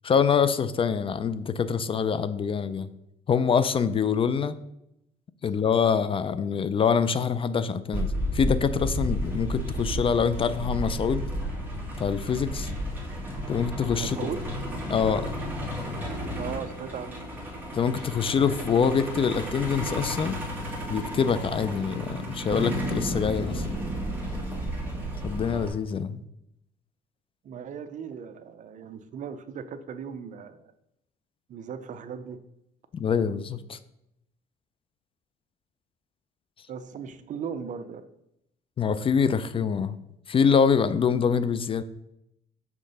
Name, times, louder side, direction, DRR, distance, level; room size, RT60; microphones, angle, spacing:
voice 1, 0.0-2.9 3.3-4.5 5.4-11.2 12.0-12.7 13.5-14.2 14.9-15.3 17.7-20.4 20.9-23.7 25.2-26.2 32.9-33.8 38.8-40.0 40.3-41.8, left 6 dB, 35° left, 13 dB, 0.4 m, -25 dB
Truck, 7.9-25.7, equal, 10° right, 1.9 m, -32 dB
voice 2, 14.0-14.4 16.4-17.2 27.4-30.6 31.5-32.4 36.7-38.1, right 7 dB, 50° right, 11 dB, 0.5 m, -37 dB
5.9 x 3.7 x 5.3 m, 0.80 s
cardioid pair, 110°, 17 cm